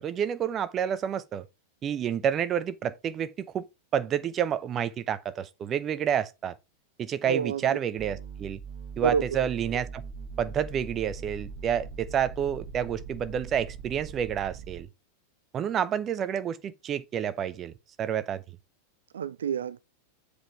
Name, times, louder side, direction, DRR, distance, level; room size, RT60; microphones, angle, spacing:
voice 1, 0.0-1.4 1.8-3.7 3.9-6.5 7.0-8.6 9.0-10.0 10.4-14.9 15.5-17.7 18.0-18.4, right 9 dB, 30° right, 0.8 m, -29 dB
voice 2, 7.2-7.8 9.0-9.5 9.7-9.8 19.1-19.9, right 7 dB, 65° right, 0.3 m, -29 dB
sound 1, 8.0-14.8, right 5 dB, 45° right, 1.6 m, -41 dB
7.6 x 5.0 x 4.5 m
figure-of-eight pair, 90°, 0 cm